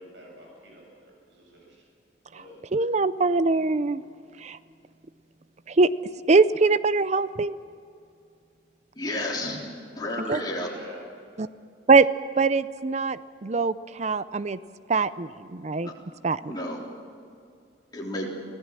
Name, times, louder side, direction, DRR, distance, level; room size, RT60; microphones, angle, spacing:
voice 1, 0.0-1.9 2.3-2.6 10.5-11.1, equal, 75° right, -1 dB, 7.8 m, -48 dB
voice 2, 2.7-4.0 4.4-4.6 5.7-5.9 6.3-7.6 10.3-10.4 11.4-11.5 11.9-12.1 12.4-14.6 14.9-15.9 16.2-16.5, right 4 dB, 35° right, 15 dB, 0.5 m, -22 dB
voice 3, 9.0-9.6 10.0-10.7 15.8-15.9 16.5-16.8 17.9-18.3, left 1 dB, 20° left, -3 dB, 3.7 m, -31 dB
25.0 x 16.5 x 7.6 m, 2.4 s
head